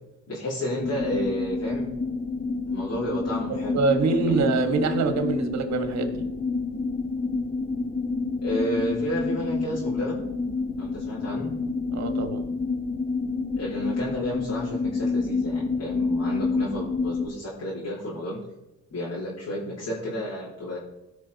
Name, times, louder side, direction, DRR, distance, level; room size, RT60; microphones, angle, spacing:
voice 1, 0.3-1.9 2.7-3.8 4.1-4.4 8.4-10.2 10.8-11.6 13.6-18.4 18.9-20.8, equal, 55° left, -8 dB, 3.7 m, -31 dB
sound 1, 0.8-17.2, left 4 dB, 30° left, 1.7 m, -28 dB
voice 2, 3.7-6.3 11.9-12.5, right 4 dB, 60° right, 6 dB, 1.7 m, -25 dB
17.0 x 5.8 x 4.1 m, 0.96 s
cardioid pair, 90°, 30 cm